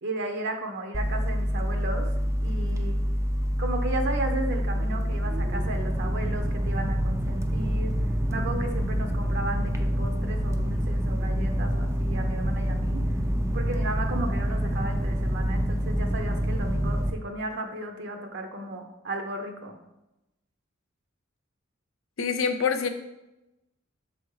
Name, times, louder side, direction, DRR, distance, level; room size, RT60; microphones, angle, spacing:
voice 1, 0.0-2.1 2.4-3.0 3.6-8.0 8.3-13.1 13.5-19.8, right 2 dB, 60° right, 4 dB, 0.7 m, -34 dB
sound 1, 0.9-17.1, equal, 15° right, 0.4 m, -27 dB
voice 2, 22.2-22.9, left 6 dB, 70° left, 7 dB, 0.6 m, -25 dB
6.3 x 3.5 x 4.7 m, 0.94 s
head